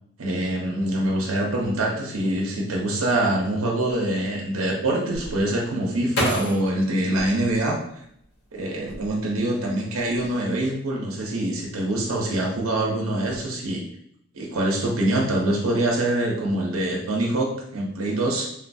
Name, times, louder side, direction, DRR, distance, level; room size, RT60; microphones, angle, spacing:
voice 1, 0.2-7.8 8.5-13.8 14.3-18.5, right 1 dB, 85° right, -1 dB, 0.7 m, -24 dB
sound 1, 5.1-8.2 8.8-9.5 9.8-10.3, left 1 dB, 50° left, 0.8 m, -31 dB
3.7 x 2.2 x 2.6 m, 0.71 s
head